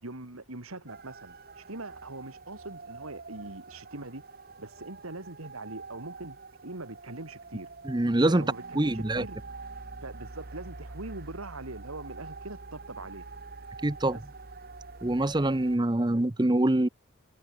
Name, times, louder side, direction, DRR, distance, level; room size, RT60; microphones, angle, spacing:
voice 1, 0.0-4.2 4.6-7.7 8.3-9.4 10.0-13.2 14.1-14.2, right 2 dB, 90° right, 2.9 m, -42 dB
sound 1, 0.9-15.8, right 3 dB, 45° right, 1.0 m, -45 dB
voice 2, 7.8-8.5 8.7-9.2 13.8-14.2 15.0-16.9, right 1 dB, 20° right, 0.7 m, -25 dB
head